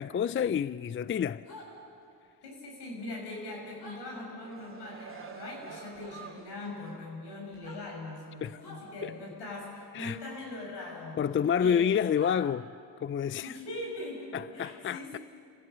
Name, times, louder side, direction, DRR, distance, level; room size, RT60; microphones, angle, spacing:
voice 1, 0.0-1.4 8.4-8.6 9.0-9.1 9.9-10.2 11.2-12.7 13.0-13.5 14.3-15.2, left 8 dB, 30° left, 0.4 m, -29 dB
sound 1, 1.4-1.7 3.8-4.0 5.9-6.1 7.5-7.8 8.6-8.8 10.9-11.0 12.1-12.4, left 2 dB, 65° left, 7.2 m, -48 dB
voice 2, 2.4-11.3 11.6-12.1 13.4-15.2, left 2 dB, 85° left, 6.0 m, -41 dB
sound 2, 4.2-6.9 7.3-7.4, right 4 dB, 30° right, 2.6 m, -48 dB
28.0 x 16.5 x 6.8 m
supercardioid pair, 60°, 40 cm